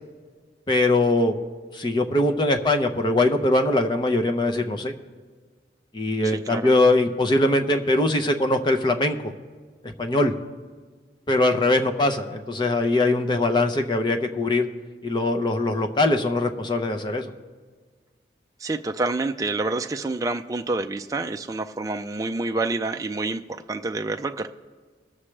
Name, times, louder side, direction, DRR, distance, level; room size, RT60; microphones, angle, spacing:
voice 1, 0.7-1.3 1.7-4.9 5.9-9.3 9.8-10.3 11.3-14.7 15.0-17.3, left 2 dB, 25° left, 6 dB, 0.7 m, -22 dB
voice 2, 6.2-6.7 18.6-23.4 23.7-24.5, right 2 dB, 20° right, 5 dB, 0.4 m, -28 dB
21.0 x 7.2 x 3.3 m, 1.5 s
head